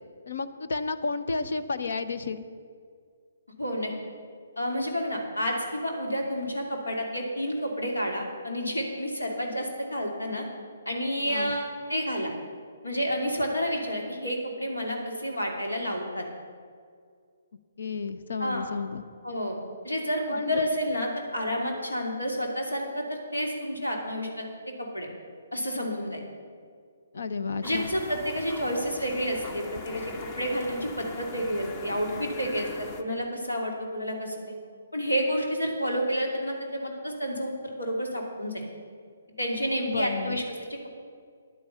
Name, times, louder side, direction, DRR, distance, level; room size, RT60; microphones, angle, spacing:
voice 1, 0.3-2.5 11.3-11.6 17.8-19.0 20.3-20.6 27.1-27.9 39.9-40.4, left 4 dB, 60° left, 11 dB, 0.8 m, -32 dB
voice 2, 3.6-3.9 4.6-10.5 10.9-12.3 12.8-16.2 18.4-18.7 19.2-19.6 19.8-24.5 24.8-25.1 25.5-26.2 27.6-34.5 34.9-38.6 39.4-40.4, equal, 85° left, 1 dB, 2.8 m, -30 dB
sound 1, 27.6-33.0, left 4 dB, 25° left, 0.9 m, -41 dB
11.0 x 9.6 x 7.1 m, 2.1 s
figure-of-eight pair, 135°, 0 cm